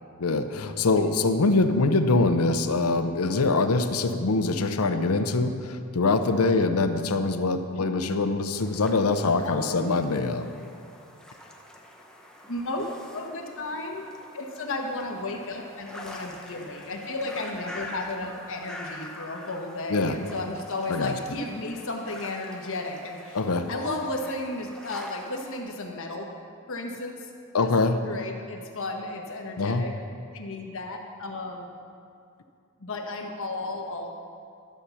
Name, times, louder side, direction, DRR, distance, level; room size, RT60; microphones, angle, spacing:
voice 1, 0.2-10.4 19.9-20.2 20.9-21.1 23.3-23.7 27.5-28.0 29.6-29.8, left 3 dB, 85° left, 8 dB, 0.7 m, -24 dB
sound 1, 8.5-25.6, left 1 dB, 5° left, 0.9 m, -45 dB
voice 2, 9.4-9.9 12.5-12.9 13.1-14.1 14.3-26.3 26.7-27.3 27.6-27.7 28.0-29.9 30.3-31.7 32.8-34.1, left 2 dB, 65° left, 2 dB, 1.2 m, -34 dB
12.5 x 5.8 x 6.9 m, 2.4 s
head